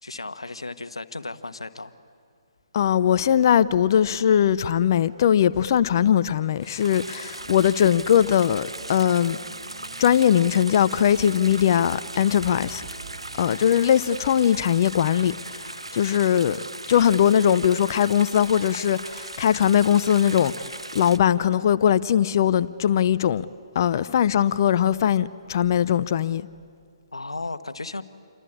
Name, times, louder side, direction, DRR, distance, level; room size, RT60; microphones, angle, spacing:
voice 1, 0.0-1.9 27.1-28.0, left 3 dB, 80° left, 1.2 m, -35 dB
voice 2, 2.7-9.4 10.0-12.8 13.4-15.4 15.9-16.6 16.9-20.5 20.9-23.5 23.7-26.5, left 9 dB, 45° left, 0.6 m, -20 dB
sound 1, 6.6-21.2, right 2 dB, 90° right, 1.0 m, -38 dB
sound 2, 7.4-16.6, right 6 dB, 45° right, 1.8 m, -47 dB
28.0 x 23.5 x 8.7 m
figure-of-eight pair, 135°, 3 cm